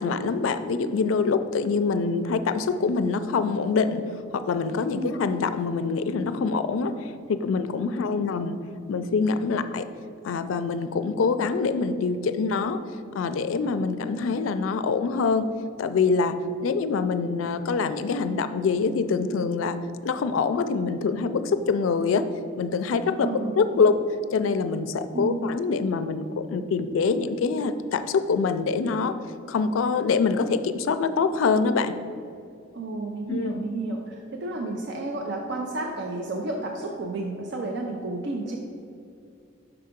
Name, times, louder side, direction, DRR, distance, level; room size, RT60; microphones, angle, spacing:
voice 1, 0.0-4.0 4.3-8.6 8.9-9.9 10.2-12.8 13.1-15.5 15.8-19.8 20.0-22.2 22.6-23.3 23.6-23.9 24.3-29.1 29.5-31.9 33.3-33.5, left 4 dB, 80° left, 11 dB, 0.4 m, -25 dB
voice 2, 23.2-23.9 25.1-25.5 32.7-38.6, right 2 dB, 60° right, 2 dB, 0.5 m, -31 dB
5.9 x 4.6 x 5.1 m, 2.4 s
head